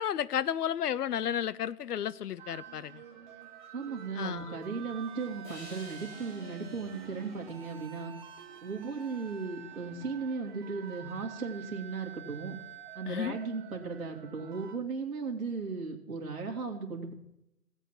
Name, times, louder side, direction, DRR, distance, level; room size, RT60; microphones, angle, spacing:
voice 1, 0.0-3.0 4.1-4.6 13.1-13.4, left 9 dB, 80° left, 0.6 m, -32 dB
sound 1, 2.4-14.8, right 9 dB, 30° right, 1.3 m, -49 dB
voice 2, 3.7-8.1 8.6-12.6 12.9-17.1, right 4 dB, 60° right, 2.6 m, -36 dB
sound 2, 5.4-8.8, left 1 dB, 30° left, 2.9 m, -53 dB
16.5 x 8.1 x 4.5 m
hypercardioid pair, 160°, 46 cm